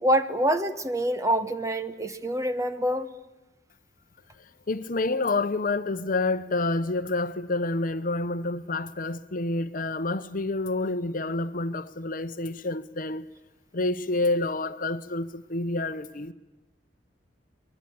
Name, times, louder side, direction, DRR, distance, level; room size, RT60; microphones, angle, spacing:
voice 1, 0.0-3.1, right 1 dB, 20° right, 1.3 m, -26 dB
voice 2, 4.7-13.3 13.7-16.3, left 2 dB, 50° left, 0.9 m, -28 dB
25.5 x 21.5 x 8.6 m
head